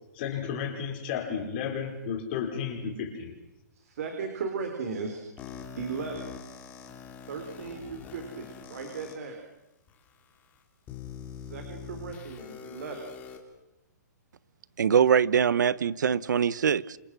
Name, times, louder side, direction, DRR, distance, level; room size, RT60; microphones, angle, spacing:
voice 1, 0.1-3.3, left 7 dB, 35° left, 5.4 m, -33 dB
voice 2, 3.7-5.2 5.8-6.2 7.3-9.4 11.4-13.0, right 5 dB, 55° right, 4.2 m, -36 dB
sound 1, 5.4-9.1 9.9-10.0 10.9-13.4, left 7 dB, 15° left, 2.9 m, -44 dB
voice 3, 14.8-17.0, right 7 dB, 80° right, 1.1 m, -23 dB
28.0 x 26.5 x 6.3 m
hypercardioid pair, 170°, 10 cm